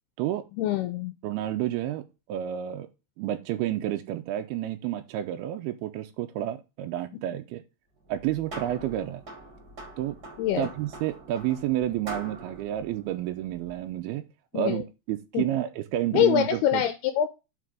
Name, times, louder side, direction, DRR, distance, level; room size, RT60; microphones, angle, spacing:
voice 1, 0.6-1.1 10.4-10.7 14.5-14.8 15.3-15.4 16.1-17.3, left 11 dB, 80° left, 9 dB, 2.4 m, -24 dB
voice 2, 1.2-2.0 2.3-2.9 3.2-7.6 8.1-9.2 10.0-10.2 10.6-14.3 14.5-16.8, right 12 dB, 80° right, 5 dB, 2.3 m, -30 dB
sound 1, 8.0-13.9, right 2 dB, 30° right, 2.0 m, -44 dB
5.8 x 5.6 x 6.3 m, 0.28 s
omnidirectional pair, 5.0 m